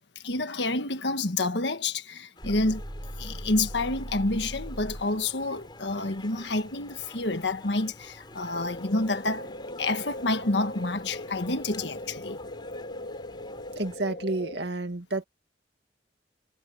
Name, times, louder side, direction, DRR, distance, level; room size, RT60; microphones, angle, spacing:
voice 1, 0.1-2.8 3.2-12.4, left 2 dB, 70° left, 1.5 m, -29 dB
sound 1, 2.4-14.0, left 2 dB, 25° left, 5.2 m, -48 dB
sound 2, 2.4-5.2, equal, 50° right, 3.6 m, -39 dB
sound 3, 8.5-14.7, left 1 dB, 55° left, 2.6 m, -40 dB
voice 2, 13.8-15.2, right 2 dB, 65° right, 2.2 m, -30 dB
head